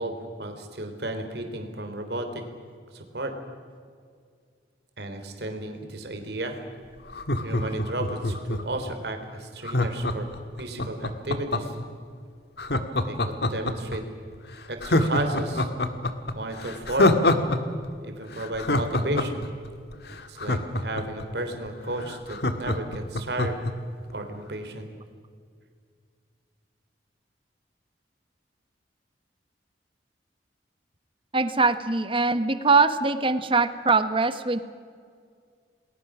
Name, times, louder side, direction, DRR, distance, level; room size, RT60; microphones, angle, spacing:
voice 1, 0.0-2.4 2.9-3.3 5.0-6.6 7.4-10.3 10.6-11.8 13.0-14.0 14.7-15.7 16.3-17.2 18.0-19.5 20.3-23.6 24.1-24.9, right 1 dB, 65° right, 5 dB, 3.4 m, -33 dB
Laughter, 7.1-8.8 9.6-11.8 12.6-14.0 14.3-14.4 14.8-17.6 17.8-17.9 18.3-21.2 21.7-21.8 22.0-23.7 24.1-24.2, left 1 dB, 65° left, 1.7 m, -25 dB
voice 2, 31.3-34.6, right 4 dB, 30° right, 11 dB, 1.2 m, -22 dB
28.5 x 20.5 x 6.2 m, 2.1 s
head